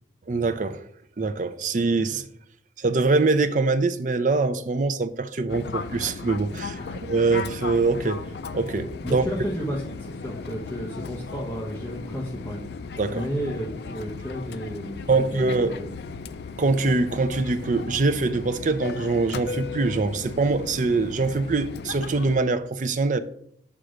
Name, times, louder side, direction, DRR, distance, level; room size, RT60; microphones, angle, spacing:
voice 1, 0.3-0.8 1.2-2.3 2.8-8.2 8.5-9.3 13.0-13.2 15.1-15.8 16.6-23.2, right 3 dB, 45° right, 0.5 m, -24 dB
Fixed-wing aircraft airplane, 5.5-22.4, left 4 dB, 70° left, 0.4 m, -36 dB
voice 2, 6.5-7.0 9.0-12.6 13.1-15.9, equal, 15° left, 1.1 m, -33 dB
8.0 x 3.8 x 6.4 m
head